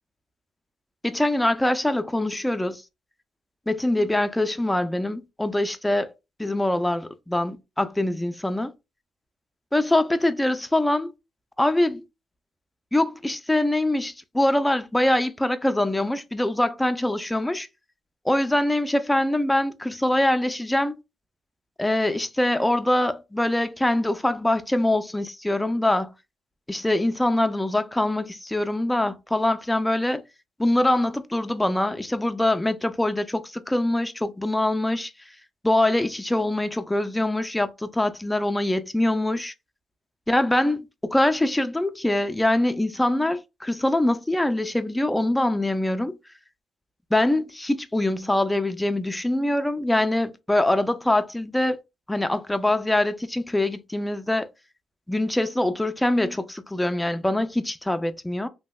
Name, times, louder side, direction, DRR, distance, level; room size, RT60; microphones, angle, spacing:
voice 1, 1.0-2.8 3.7-6.1 6.4-8.7 9.7-11.1 11.6-12.0 12.9-17.7 18.3-21.0 21.8-26.1 26.7-30.2 30.6-35.1 35.6-39.5 40.3-46.1 47.1-51.8 52.1-54.5 55.1-58.5, left 1 dB, 10° left, 0.4 m, -23 dB
3.1 x 2.7 x 2.3 m
cardioid pair, 90°, 0 cm